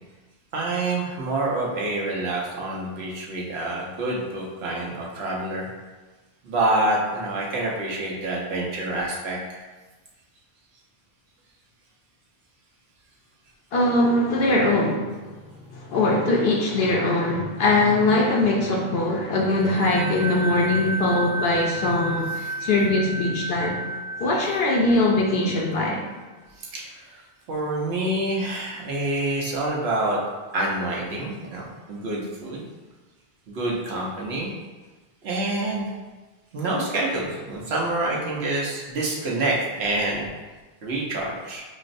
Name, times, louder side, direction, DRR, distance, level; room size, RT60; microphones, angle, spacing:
voice 1, 0.5-5.7 6.4-9.6 22.4-22.5 26.6-27.2 27.5-30.2 30.5-32.6 33.5-34.5 35.2-35.9 36.5-40.3 40.8-41.6, right 2 dB, 80° right, -3 dB, 1.0 m, -27 dB
voice 2, 13.7-15.1 15.7-23.8 24.2-26.0, left 2 dB, 70° left, -1 dB, 0.8 m, -21 dB
sound 1, 19.4-25.9, right 2 dB, 60° right, 0.3 m, -33 dB
6.1 x 2.0 x 2.5 m, 1.3 s
omnidirectional pair, 1.1 m